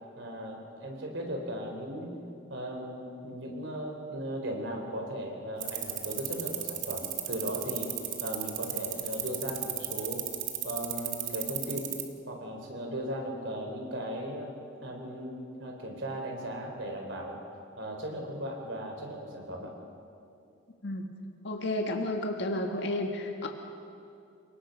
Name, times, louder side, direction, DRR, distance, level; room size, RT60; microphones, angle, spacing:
voice 1, 0.2-2.1 2.5-7.9 8.2-10.2 10.6-11.9 12.3-14.5 14.8-17.4 17.8-19.7, equal, 70° right, 2 dB, 4.0 m, -37 dB
sound 1, 5.6-12.1, right 14 dB, 85° right, 1.9 m, -33 dB
voice 2, 21.4-23.5, left 1 dB, 65° left, 3 dB, 1.6 m, -31 dB
28.5 x 19.0 x 5.3 m, 2.6 s
head